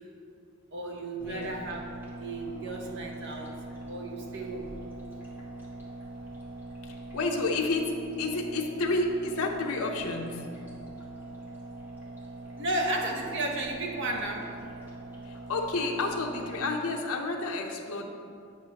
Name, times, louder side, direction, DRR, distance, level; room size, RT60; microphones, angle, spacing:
voice 1, 0.7-1.9 2.2-3.5 3.9-4.7 12.6-14.5, right 2 dB, 55° right, 1 dB, 0.8 m, -33 dB
voice 2, 1.2-1.7 6.8-7.9 8.2-10.5 15.2-18.1, left 2 dB, 75° left, 1 dB, 0.7 m, -30 dB
sound 1, 1.2-16.7, right 2 dB, 10° right, 1.3 m, -43 dB
9.2 x 6.2 x 2.9 m, 2.3 s
head